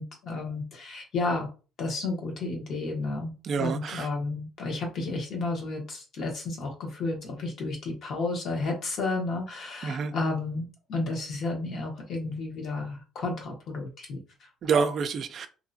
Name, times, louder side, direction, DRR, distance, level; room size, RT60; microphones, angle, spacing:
voice 1, 0.0-1.5 1.8-14.5, left 3 dB, 55° left, 1.1 m, -32 dB
voice 2, 3.5-4.1 9.8-10.1 14.6-15.5, right 5 dB, 50° right, 0.3 m, -27 dB
2.7 x 2.3 x 2.6 m
cardioid pair, 120°, 0 cm